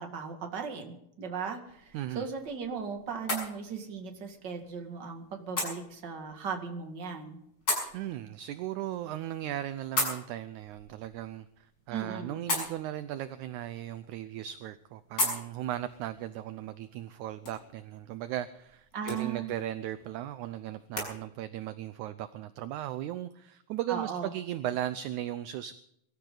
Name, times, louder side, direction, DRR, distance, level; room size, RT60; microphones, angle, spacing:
voice 1, 0.0-7.4 11.9-12.5 18.9-19.5 23.9-24.3, right 6 dB, 35° right, 4 dB, 2.4 m, -37 dB
sound 1, 1.6-21.1, left 1 dB, 25° left, 6.9 m, -39 dB
voice 2, 1.9-2.3 7.9-25.7, right 12 dB, 75° right, 13 dB, 1.9 m, -37 dB
24.0 x 13.5 x 3.9 m, 0.77 s
omnidirectional pair, 4.0 m